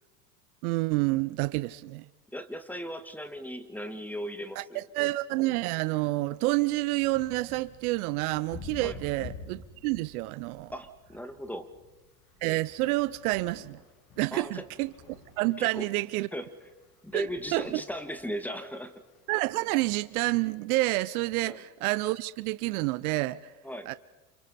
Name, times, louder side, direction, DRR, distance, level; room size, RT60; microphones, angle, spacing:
voice 1, 0.6-2.1 4.6-10.7 12.4-13.8 14.2-14.9 15.4-16.3 17.1-17.8 19.3-23.5 23.9-24.0, right 20 dB, 60° right, 0.8 m, -29 dB
voice 2, 2.3-4.8 8.8-9.0 10.7-11.7 14.3-14.6 15.6-15.9 16.3-16.5 17.0-18.9 21.5-21.6 23.6-23.9, equal, 5° left, 1.8 m, -37 dB
sound 1, 6.3-20.4, left 4 dB, 45° left, 7.5 m, -50 dB
29.0 x 28.5 x 4.2 m
hypercardioid pair, 90°, 49 cm